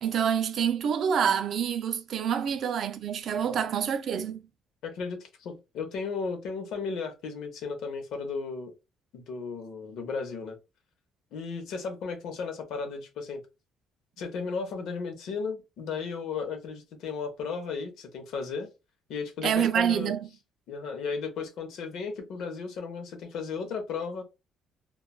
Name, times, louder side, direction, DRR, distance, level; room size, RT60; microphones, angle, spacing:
voice 1, 0.0-4.4 19.4-20.3, right 8 dB, 55° right, 0.4 m, -27 dB
voice 2, 4.8-8.7 9.1-10.6 11.3-13.4 14.2-18.7 19.1-20.1 20.7-24.2, left 5 dB, 70° left, 0.8 m, -35 dB
3.0 x 2.2 x 2.3 m
cardioid pair, 145°, 0 cm